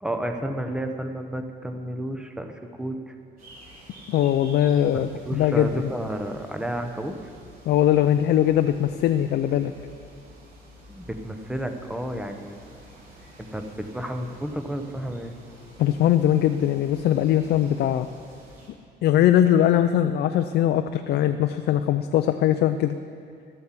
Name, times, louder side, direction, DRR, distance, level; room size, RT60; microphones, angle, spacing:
voice 1, 0.0-3.2 5.2-7.2 10.9-12.6 13.4-15.3, right 1 dB, 5° right, 5 dB, 0.7 m, -31 dB
sound 1, 3.4-18.7, equal, 55° right, 3.9 m, -49 dB
voice 2, 4.1-5.9 7.7-9.7 15.8-18.1 19.0-23.0, left 11 dB, 65° left, 8 dB, 0.5 m, -21 dB
12.5 x 7.8 x 7.4 m, 2.3 s
cardioid pair, 160°, 18 cm